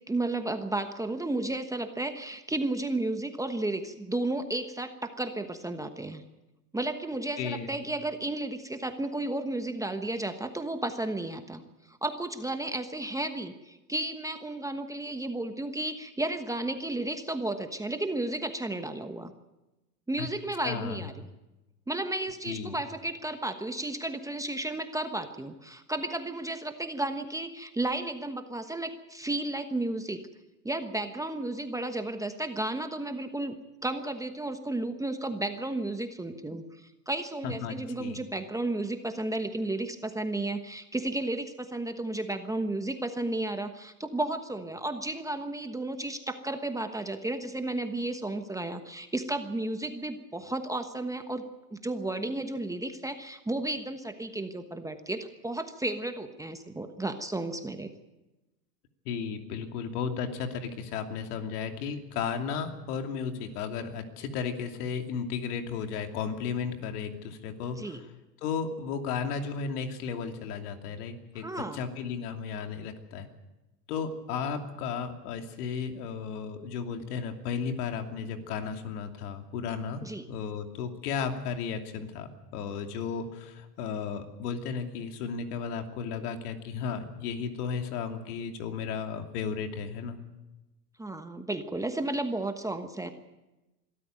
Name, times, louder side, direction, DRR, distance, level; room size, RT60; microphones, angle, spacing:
voice 1, 0.1-6.2 6.7-11.6 11.9-19.3 20.1-21.3 21.9-30.2 30.6-51.4 51.7-57.9 67.8-68.0 71.3-71.8 80.0-80.2 91.0-93.1, right 2 dB, 5° right, 7 dB, 1.2 m, -33 dB
voice 2, 7.4-7.7 20.2-20.3 20.6-21.1 22.5-22.8 37.4-38.2 59.0-68.0 68.4-71.5 71.7-73.3 73.9-80.0 80.3-90.2, left 6 dB, 70° left, 5 dB, 2.9 m, -34 dB
23.0 x 13.5 x 9.0 m, 1.0 s
supercardioid pair, 120°, 48 cm